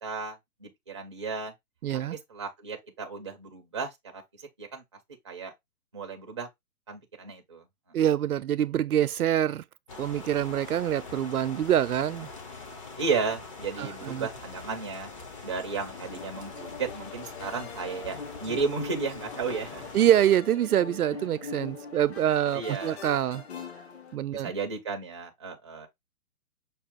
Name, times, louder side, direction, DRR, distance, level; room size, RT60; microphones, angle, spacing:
voice 1, 0.0-1.5 2.1-4.2 4.6-4.8 5.2-5.5 5.9-6.5 6.9-7.7 13.0-15.1 15.4-19.9 22.5-23.0 24.3-25.9, right 5 dB, 20° right, 0.4 m, -34 dB
voice 2, 1.8-2.2 7.9-9.6 10.0-12.3 13.8-14.3 19.9-23.4 24.1-24.5, right 11 dB, 75° right, 0.5 m, -25 dB
sound 1, 9.9-20.3, left 4 dB, 20° left, 0.6 m, -43 dB
sound 2, 15.9-24.2, left 5 dB, 45° left, 1.1 m, -42 dB
6.0 x 2.4 x 3.5 m
figure-of-eight pair, 140°, 45 cm